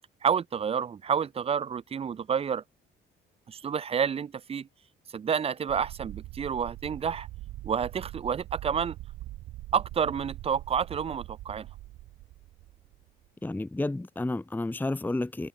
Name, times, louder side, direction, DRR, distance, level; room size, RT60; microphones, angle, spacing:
voice 1, 0.2-2.6 3.5-4.7 5.1-7.3 7.6-9.0 9.7-11.7, right 7 dB, 30° right, 0.4 m, -29 dB
sound 1, 5.7-13.3, right 17 dB, 90° right, 0.9 m, -43 dB
voice 2, 13.4-15.5, left 2 dB, 10° left, 0.8 m, -31 dB
cardioid pair, 90°, 20 cm